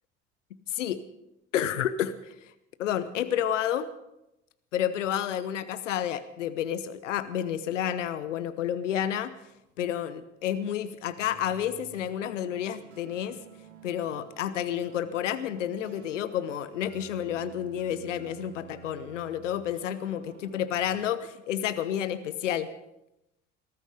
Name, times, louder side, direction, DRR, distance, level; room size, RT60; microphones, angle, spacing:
voice 1, 0.7-1.0 1.5-2.5 2.8-3.9 4.7-9.3 9.8-13.4 13.8-22.7, left 10 dB, 80° left, 13 dB, 0.9 m, -30 dB
sound 1, 11.2-21.0, right 8 dB, 75° right, 1.7 m, -51 dB
19.5 x 13.5 x 5.0 m, 0.89 s
figure-of-eight pair, 60°, 37 cm